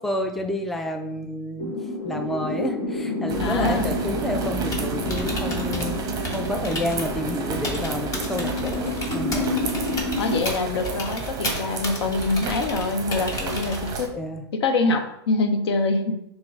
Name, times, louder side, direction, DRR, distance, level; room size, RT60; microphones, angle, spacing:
voice 1, 0.0-1.8 2.0-6.0 6.3-9.5 14.1-14.4, left 1 dB, ahead, 4 dB, 0.4 m, -29 dB
sound 1, 1.6-10.4, left 2 dB, 50° left, 1.3 m, -29 dB
sound 2, 3.3-14.1, right 4 dB, 25° right, 0.8 m, -32 dB
voice 2, 3.4-4.0 9.4-9.6 10.2-14.1 14.5-16.1, left 3 dB, 70° left, 7 dB, 0.7 m, -25 dB
Typing, 4.6-14.1, left 2 dB, 25° left, 1.1 m, -34 dB
5.9 x 2.2 x 3.6 m, 0.80 s
hypercardioid pair, 110°, 14 cm